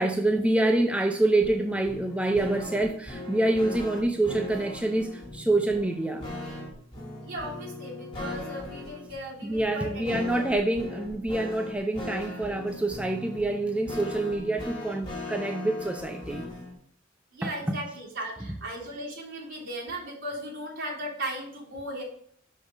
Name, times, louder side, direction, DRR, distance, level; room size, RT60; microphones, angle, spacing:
voice 1, 0.0-6.3 9.4-16.5 17.4-17.8, right 2 dB, 5° right, 3 dB, 0.5 m, -26 dB
sound 1, 1.4-16.7, left 2 dB, 25° left, 3.0 m, -39 dB
voice 2, 7.2-10.5 17.3-22.0, right 1 dB, 65° right, -5 dB, 3.2 m, -37 dB
6.0 x 5.4 x 4.9 m, 0.63 s
head